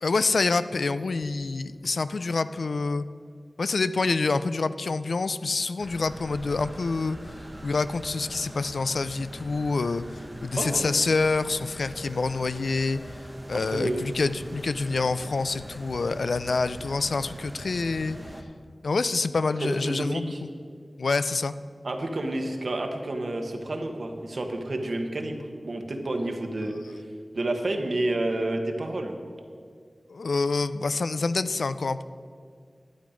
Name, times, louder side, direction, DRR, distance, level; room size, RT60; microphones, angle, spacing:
voice 1, 0.0-3.0 3.6-7.2 7.6-13.0 13.5-18.2 18.8-20.3 21.0-21.5 30.1-32.0, left 3 dB, 80° left, 13 dB, 0.3 m, -27 dB
sound 1, 5.8-18.4, right 1 dB, 20° right, 1.0 m, -43 dB
voice 2, 13.5-14.0 19.6-20.4 21.8-25.4 25.6-27.0 27.3-29.1, right 1 dB, 65° right, 4 dB, 1.2 m, -29 dB
11.5 x 8.6 x 5.1 m, 2.1 s
wide cardioid pair, 70°, 0 cm